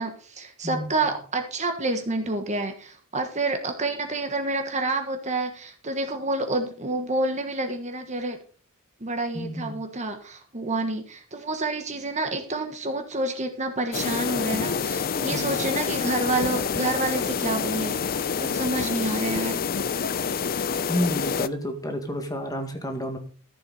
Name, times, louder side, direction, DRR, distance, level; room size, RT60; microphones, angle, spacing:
voice 1, 0.0-8.4 9.0-19.7, right 2 dB, 30° right, 5 dB, 1.5 m, -28 dB
voice 2, 9.3-9.8 15.3-15.5 20.9-23.2, equal, 15° left, 4 dB, 1.9 m, -30 dB
sound 1, 13.9-21.5, left 6 dB, 40° left, 0.5 m, -27 dB
14.0 x 7.5 x 4.1 m, 0.42 s
head